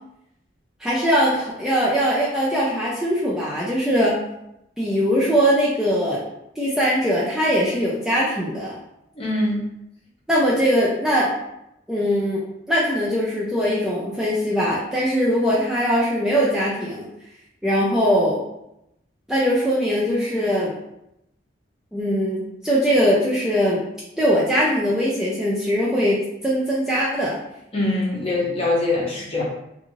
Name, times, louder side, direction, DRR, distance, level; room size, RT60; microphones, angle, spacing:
voice 1, 0.8-4.2 4.8-6.2 6.6-8.8 10.3-11.3 11.9-17.1 17.6-18.4 19.3-20.7 21.9-23.8 24.2-27.4, equal, 5° right, -7 dB, 0.4 m, -21 dB
voice 2, 9.2-9.6 27.7-29.4, left 2 dB, 30° left, -4 dB, 0.7 m, -23 dB
2.5 x 2.4 x 3.0 m, 0.83 s
head